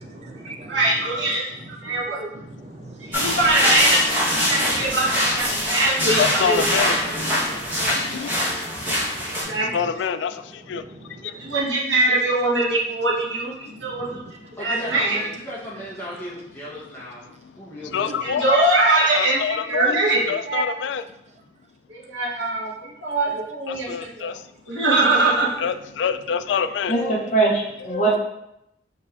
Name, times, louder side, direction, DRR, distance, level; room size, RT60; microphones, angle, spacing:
voice 1, 0.0-3.6 4.2-5.6 6.1-6.2 6.8-6.9 7.4-8.5 8.7-9.8 10.4-11.6 13.7-14.5 17.8-18.1 23.7-24.1, right 2 dB, 35° right, 3 dB, 0.5 m, -42 dB
voice 2, 0.7-1.4 1.7-2.3 3.1-6.6 9.3-9.7 11.4-14.2 14.6-15.2 18.2-19.4 19.7-20.6 21.9-24.3 24.7-25.5, right 2 dB, 90° right, -4 dB, 1.2 m, -22 dB
sound 1, 3.1-9.4, equal, 10° right, 1.2 m, -23 dB
voice 3, 6.2-7.3 7.8-8.8 9.7-10.8 11.1-11.3 13.6-14.1 17.4-17.5 17.9-18.5 19.1-20.0 20.3-21.0 23.7-24.4 24.7-24.8 25.3-27.0, left 7 dB, 80° left, 11 dB, 0.3 m, -27 dB
voice 4, 14.6-17.3 17.6-18.7, equal, 10° left, -7 dB, 1.0 m, -36 dB
voice 5, 26.9-28.2, right 3 dB, 40° left, -3 dB, 0.8 m, -21 dB
5.7 x 3.2 x 2.5 m, 0.83 s
head